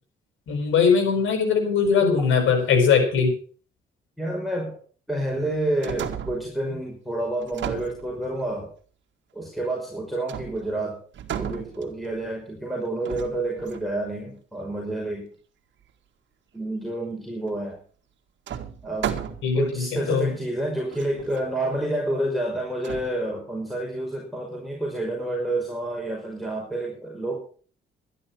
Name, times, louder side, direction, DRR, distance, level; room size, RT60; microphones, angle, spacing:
voice 1, 0.5-3.3 19.4-20.3, left 6 dB, 80° left, 5 dB, 5.9 m, -21 dB
voice 2, 4.2-4.8 5.1-8.7 9.3-11.0 11.4-15.3 16.5-17.8 18.8-19.1 19.6-27.4, right 1 dB, ahead, -2 dB, 5.6 m, -29 dB
sound 1, 5.5-6.6 7.4-8.5 10.3-10.8 11.1-12.2 13.1-14.0 17.5-17.6 18.5-19.7 20.3-20.4 20.9-21.5 22.8-23.1, right 9 dB, 65° right, 2.0 m, -34 dB
12.5 x 11.0 x 6.2 m, 0.42 s
cardioid pair, 90°, 20 cm